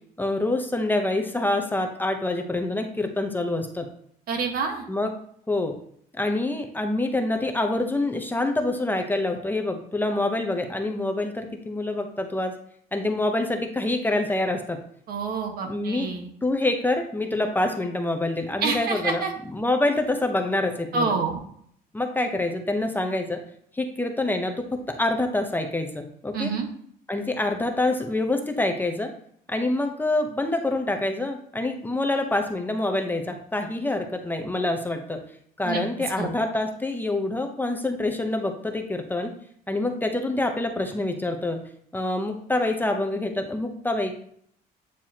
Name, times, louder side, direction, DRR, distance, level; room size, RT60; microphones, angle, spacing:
voice 1, 0.2-3.9 4.9-5.1 5.5-5.7 6.2-12.5 12.9-14.8 15.7-16.2 16.4-19.2 19.5-21.2 21.9-23.4 23.7-24.5 24.9-26.5 27.1-29.1 29.5-35.2 35.6-39.3 39.7-41.6 41.9-44.2, left 2 dB, 10° left, 4 dB, 0.8 m, -26 dB
voice 2, 4.3-4.8 15.1-16.3 18.6-19.3 20.9-21.4 26.3-26.7 35.6-35.8 36.2-36.3, right 4 dB, 65° right, 3 dB, 1.4 m, -27 dB
9.0 x 4.6 x 2.9 m, 0.63 s
cardioid pair, 110°, 17 cm